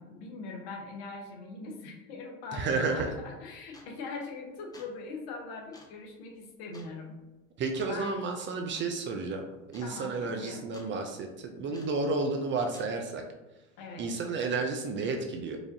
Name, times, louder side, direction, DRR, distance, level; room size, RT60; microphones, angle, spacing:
voice 1, 0.0-7.1 7.9-8.2 9.8-10.6 13.8-14.1, left 3 dB, 65° left, 1 dB, 1.1 m, -41 dB
voice 2, 2.5-3.1 7.6-9.4 9.7-13.2 14.0-15.6, right 3 dB, 30° right, 4 dB, 0.4 m, -31 dB
sound 1, 3.7-4.1 4.5-5.0 5.7-6.0 6.7-6.9 7.7-8.0 8.7-9.0 9.3-9.4 9.7-9.9 10.2-10.9 11.7-12.1 12.7-13.0, left 2 dB, 10° left, 0.7 m, -53 dB
4.7 x 2.5 x 2.6 m, 1.1 s
hypercardioid pair, 90°, 39 cm